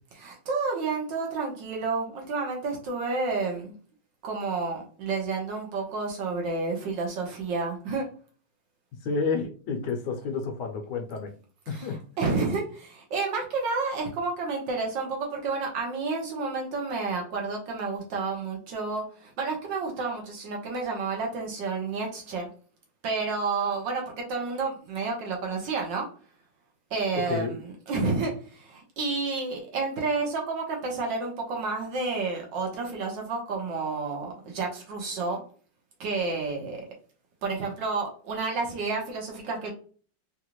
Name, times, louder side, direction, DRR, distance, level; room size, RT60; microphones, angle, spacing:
voice 1, 0.2-3.7 4.2-8.1 11.7-11.9 12.2-22.5 23.0-26.1 26.9-35.4 36.0-36.9 37.4-39.7, right 4 dB, 75° right, 1.7 m, -30 dB
voice 2, 9.0-11.3 11.7-12.0 27.1-27.5, left 4 dB, 70° left, 1.3 m, -30 dB
3.9 x 2.5 x 3.0 m
omnidirectional pair, 2.0 m